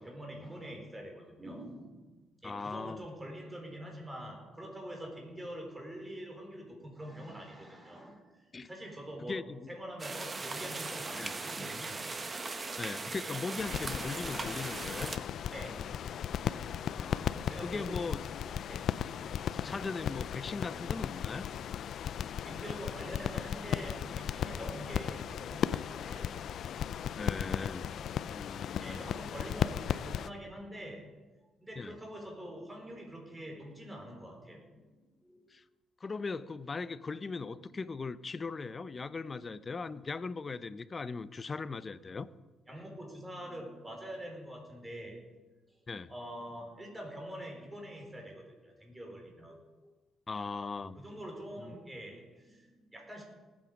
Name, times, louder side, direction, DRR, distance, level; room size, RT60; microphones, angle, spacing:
voice 1, 0.0-2.0 2.4-12.1 15.5-16.0 17.5-18.2 18.6-19.5 22.4-26.3 28.8-31.1 31.6-35.6 42.7-45.2 46.1-49.9 51.0-53.2, equal, 15° right, 1 dB, 4.4 m, -45 dB
voice 2, 2.4-3.0 8.5-8.7 9.2-9.7 11.2-11.3 12.8-15.1 16.9-18.2 19.5-21.5 27.2-27.9 28.3-29.0 31.8-32.0 35.5-35.6 36.0-42.3 45.9-46.1 50.3-51.0 51.6-51.7, left 4 dB, 35° left, 15 dB, 0.7 m, -39 dB
sound 1, 10.0-15.2, right 3 dB, 30° right, 1.3 m, -39 dB
sound 2, 13.6-30.3, left 9 dB, 65° left, 0.5 m, -36 dB
19.0 x 8.8 x 5.2 m, 1.2 s
cardioid pair, 90°, 0 cm